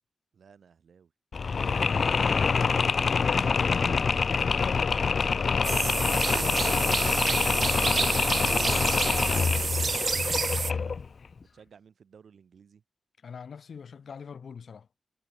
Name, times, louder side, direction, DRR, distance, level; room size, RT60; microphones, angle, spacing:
voice 1, 0.3-1.1 7.6-11.0 11.4-12.8, right 6 dB, 70° right, 2.7 m, -54 dB
Mechanisms, 1.3-11.1, left 5 dB, 50° left, 0.3 m, -26 dB
voice 2, 3.1-7.0 13.2-14.9, left 6 dB, 65° left, 2.9 m, -41 dB
sound 1, 5.6-10.7, right 4 dB, 45° right, 0.3 m, -29 dB
wide cardioid pair, 165°, 0 cm